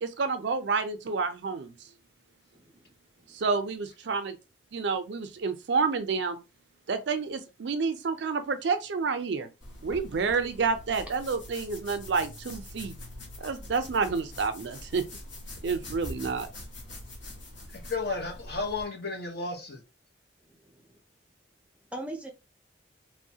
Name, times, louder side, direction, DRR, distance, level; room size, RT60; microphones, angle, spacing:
voice 1, 0.0-1.7 3.3-4.4 4.7-6.4 6.9-9.5 9.8-12.9 13.4-15.0 15.6-16.5, right 4 dB, 65° right, 0.4 m, -29 dB
sound 1, 9.6-18.9, left 1 dB, 80° left, 1.1 m, -44 dB
voice 2, 17.7-19.8, left 3 dB, 55° left, 0.9 m, -33 dB
voice 3, 20.5-21.0 21.9-22.3, right 1 dB, 5° right, 0.4 m, -41 dB
3.0 x 2.1 x 2.7 m
head